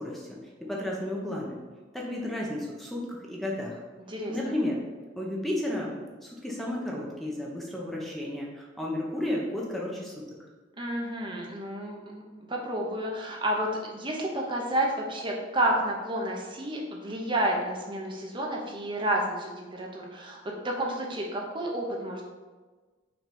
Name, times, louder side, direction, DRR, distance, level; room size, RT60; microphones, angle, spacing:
voice 1, 0.0-1.6 1.9-3.8 4.3-4.8 5.1-10.2, left 1 dB, ahead, -3 dB, 1.0 m, -33 dB
voice 2, 4.1-4.5 10.8-12.2 12.5-22.2, right 1 dB, 25° right, -1 dB, 1.0 m, -30 dB
6.2 x 4.1 x 5.2 m, 1.3 s
head